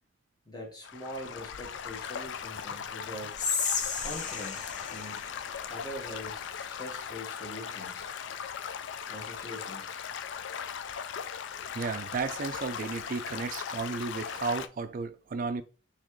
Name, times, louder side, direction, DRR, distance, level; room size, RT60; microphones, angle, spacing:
voice 1, 0.5-3.4 4.0-5.3 5.7-8.1 9.1-10.0, left 1 dB, 20° left, 1.4 m, -43 dB
Stream / Gurgling / Trickle dribble, 0.8-14.7, left 7 dB, 65° left, 0.3 m, -39 dB
Whispering, 3.3-6.5, left 5 dB, 40° left, 0.8 m, -34 dB
voice 2, 11.7-15.6, right 4 dB, 45° right, 0.3 m, -33 dB
4.3 x 3.5 x 3.1 m
head